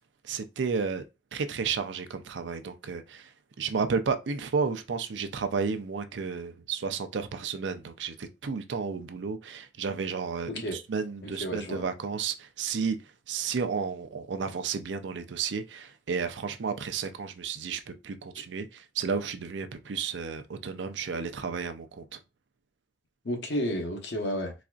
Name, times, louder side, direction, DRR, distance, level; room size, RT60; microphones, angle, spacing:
voice 1, 0.2-1.0 1.3-3.3 3.6-13.0 13.3-22.2, right 5 dB, 85° right, 0.5 m, -32 dB
voice 2, 10.5-10.8 11.2-11.8 23.2-24.5, equal, 75° left, 1.0 m, -31 dB
4.1 x 2.5 x 2.4 m
head